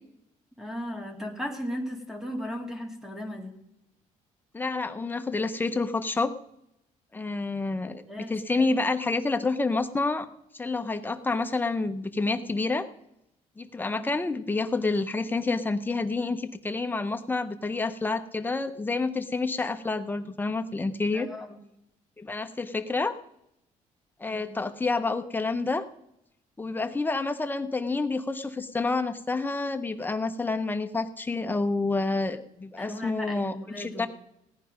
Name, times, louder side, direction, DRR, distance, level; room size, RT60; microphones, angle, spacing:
voice 1, 0.6-3.6 8.1-8.7 13.8-14.1 21.1-21.6 24.3-24.4 32.0-32.1 32.6-34.1, equal, 5° right, 4 dB, 2.2 m, -37 dB
voice 2, 4.5-6.3 7.1-10.3 10.5-12.9 13.6-21.3 22.2-23.1 24.2-25.8 26.6-34.1, left 3 dB, 15° left, 8 dB, 1.0 m, -28 dB
17.0 x 10.0 x 5.2 m, 0.81 s
cardioid pair, 110°, 14 cm